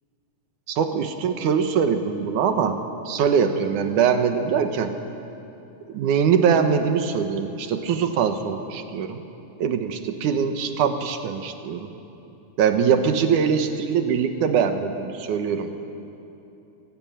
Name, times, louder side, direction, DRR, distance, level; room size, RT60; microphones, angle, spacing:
voice 1, 0.7-2.8 3.1-4.9 5.9-9.2 9.6-11.9 12.6-15.8, right 7 dB, 75° right, 7 dB, 2.7 m, -22 dB
25.0 x 17.0 x 8.8 m, 2.9 s
omnidirectional pair, 3.7 m